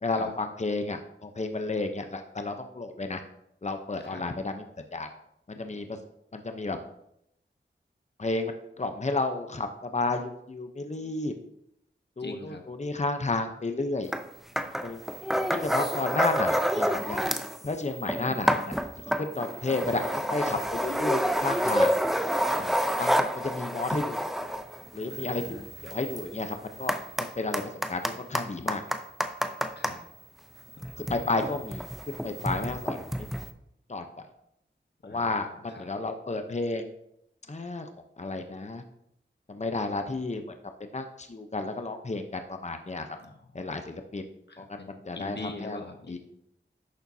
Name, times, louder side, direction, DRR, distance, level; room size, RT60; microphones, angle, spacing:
voice 1, 0.0-3.2 3.6-4.6 4.9-5.1 5.5-6.0 6.3-6.8 8.2-11.3 12.2-14.1 14.8-15.0 15.5-17.2 17.6-21.9 23.0-24.2 24.9-25.6 25.8-27.6 27.9-28.8 31.0-33.3 33.9-34.3 35.0-36.9 37.5-37.9 38.2-38.8 39.5-40.4 40.8-43.1 43.5-44.3 44.6-46.2, left 3 dB, 35° left, 6 dB, 0.8 m, -32 dB
voice 2, 12.2-12.6 22.5-22.8 25.1-25.6 29.7-30.0 30.7-30.9 35.0-35.9 43.2-43.7 44.5-46.2, left 3 dB, 60° left, 5 dB, 1.1 m, -43 dB
sound 1, 14.1-14.3 14.6-17.6 17.9-30.0 30.7-33.5, equal, ahead, 0.7 m, -29 dB
11.0 x 6.7 x 2.8 m, 0.77 s
wide cardioid pair, 45°, 20 cm